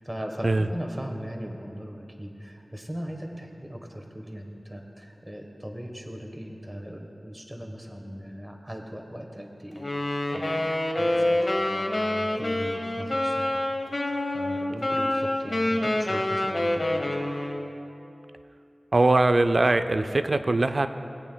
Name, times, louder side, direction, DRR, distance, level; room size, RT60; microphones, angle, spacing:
voice 1, 0.0-9.9 10.3-10.7 10.9-13.6 14.3-17.0, equal, 20° right, 3 dB, 1.2 m, -39 dB
Wind instrument woodwind instrument, 9.8-17.7, left 1 dB, 45° left, 0.9 m, -27 dB
voice 2, 18.9-20.9, right 2 dB, 55° right, 9 dB, 0.4 m, -21 dB
19.5 x 8.4 x 2.2 m, 2.8 s
wide cardioid pair, 55°, 0 cm